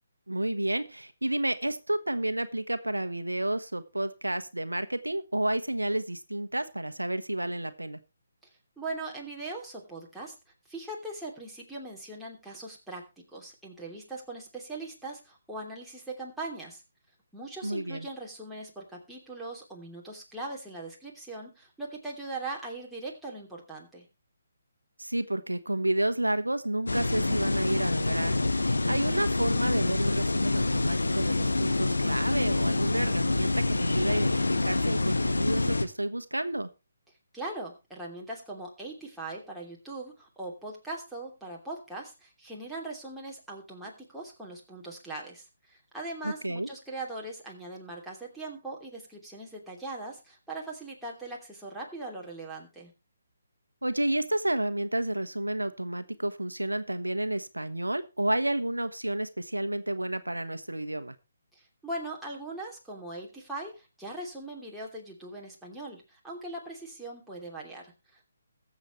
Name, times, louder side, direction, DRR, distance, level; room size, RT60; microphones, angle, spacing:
voice 1, 0.3-8.0 17.6-18.1 25.0-28.5 28.9-36.7 46.2-46.7 53.8-61.1, right 1 dB, 90° right, 11 dB, 1.1 m, -30 dB
voice 2, 8.8-10.4 10.7-16.8 17.3-24.1 37.3-52.9 61.5-68.3, right 2 dB, ahead, -5 dB, 3.0 m, -40 dB
sound 1, 26.9-35.9, left 2 dB, 75° left, 1.5 m, -27 dB
21.5 x 7.3 x 3.1 m, 0.27 s
figure-of-eight pair, 145°, 0 cm